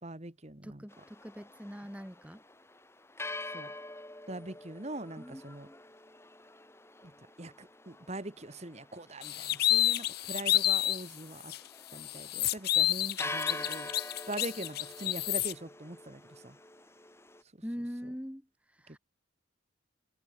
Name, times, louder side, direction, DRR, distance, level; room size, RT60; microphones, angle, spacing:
voice 1, 0.0-0.8 3.5-3.7 4.3-5.7 7.0-7.1 7.4-11.5 11.9-13.9 14.3-16.6 18.9-19.0, right 2 dB, 30° right, 1.7 m, -42 dB
voice 2, 0.6-2.4 5.2-5.8 17.6-18.5 18.8-19.0, equal, 5° right, 5.3 m, -42 dB
sound 1, 0.9-17.4, left 2 dB, 10° left, 3.6 m, -46 dB
sound 2, 9.2-11.0 11.5-11.6 12.0-15.5, left 13 dB, 50° left, 0.5 m, -29 dB
head